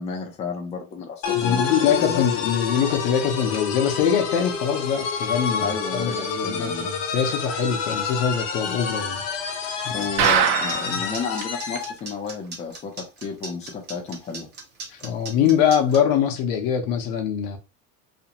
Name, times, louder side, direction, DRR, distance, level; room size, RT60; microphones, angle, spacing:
voice 1, 0.0-1.6 2.0-2.2 5.6-6.9 9.9-14.5, left 5 dB, 20° left, 0.5 m, -32 dB
sound 1, 1.2-12.0, left 6 dB, 90° left, 0.7 m, -28 dB
voice 2, 1.3-9.2 9.8-10.1 10.8-11.1 14.9-17.6, left 8 dB, 55° left, 0.8 m, -23 dB
sound 2, 9.8-16.0, right 3 dB, 30° right, 0.7 m, -37 dB
sound 3, 10.2-11.0 11.4-11.5 11.8-11.9 12.3-12.4, right 8 dB, 80° right, 0.7 m, -21 dB
2.5 x 2.1 x 2.8 m
cardioid pair, 155°, 37 cm